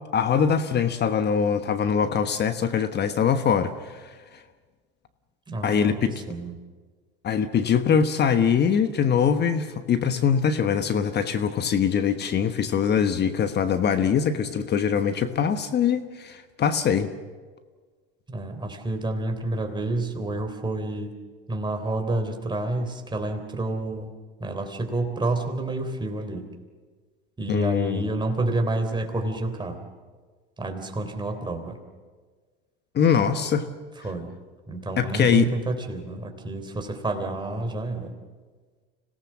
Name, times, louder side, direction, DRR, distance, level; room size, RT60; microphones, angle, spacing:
voice 1, 0.1-4.4 5.6-6.1 7.2-17.1 27.5-28.1 32.9-33.7 35.0-35.5, left 7 dB, 35° left, 10 dB, 1.2 m, -23 dB
voice 2, 5.5-6.5 18.3-21.1 21.5-24.1 24.4-26.4 27.4-29.8 30.6-31.8 34.0-34.3 34.7-38.1, right 2 dB, 15° right, 5 dB, 3.4 m, -29 dB
26.0 x 18.0 x 7.4 m, 1.5 s
hypercardioid pair, 100°, 30 cm